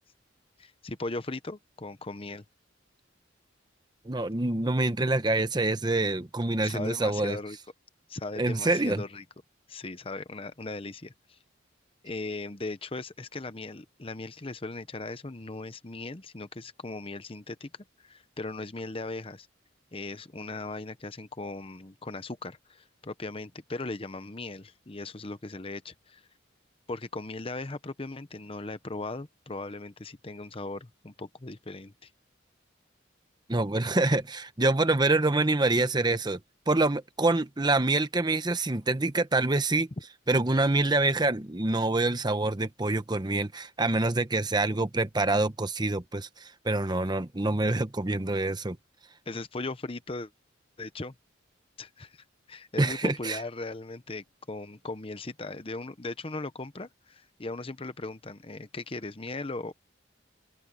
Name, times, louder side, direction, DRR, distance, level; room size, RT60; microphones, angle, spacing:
voice 1, 0.6-2.4 6.6-7.6 8.1-9.2 9.7-11.4 12.0-17.7 18.0-19.5 19.9-26.2 26.9-32.1 49.3-50.3 50.8-51.1 51.8-59.7, left 2 dB, 30° left, 0.9 m, -38 dB
voice 2, 4.0-7.4 8.4-9.0 33.5-36.4 36.7-39.9 40.3-48.8 52.8-53.4, right 2 dB, 20° right, 0.9 m, -26 dB
open air
head